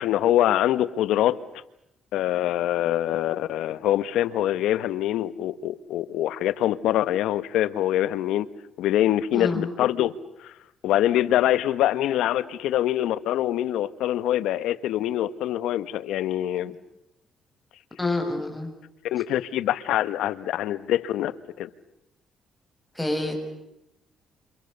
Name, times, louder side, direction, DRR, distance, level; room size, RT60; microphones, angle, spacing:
voice 1, 0.0-1.4 2.1-8.5 8.8-10.1 10.4-10.5 10.8-16.7 19.1-21.3 21.6-21.7, left 12 dB, 85° left, 15 dB, 1.2 m, -24 dB
voice 2, 9.3-9.7 16.7-16.8 18.0-18.7 22.9-23.3, left 2 dB, 5° left, 4 dB, 7.4 m, -27 dB
29.5 x 28.0 x 6.9 m, 0.85 s
cardioid pair, 85°, 0 cm